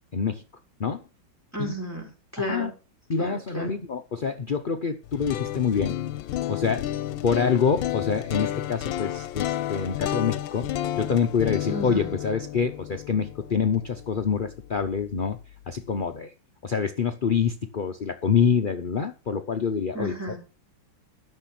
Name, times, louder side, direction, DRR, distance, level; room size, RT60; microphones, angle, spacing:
voice 1, 0.1-0.4 0.8-1.0 1.6-1.7 2.5-2.7 3.1-5.9 6.5-6.8 7.2-10.7 10.9-15.4 15.7-16.3 16.6-20.1, left 6 dB, 60° left, 6 dB, 0.5 m, -26 dB
voice 2, 1.5-2.7 3.2-3.7 11.7-12.1 19.9-20.4, equal, 10° right, 0 dB, 4.5 m, -32 dB
sound 1, 5.0-15.1, left 12 dB, 85° left, 1.5 m, -32 dB
12.5 x 6.7 x 6.0 m, 0.35 s
omnidirectional pair, 2.1 m